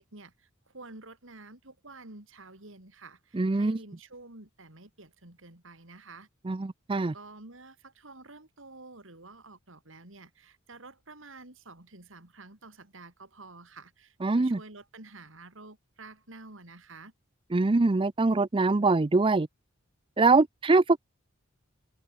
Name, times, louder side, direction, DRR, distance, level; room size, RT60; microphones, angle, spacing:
voice 1, 0.0-6.3 6.9-17.1, right 3 dB, 70° right, 4.1 m, -50 dB
voice 2, 3.3-3.8 6.5-7.1 14.2-14.6 17.5-19.5 20.2-21.0, right 3 dB, 25° right, 0.5 m, -23 dB
head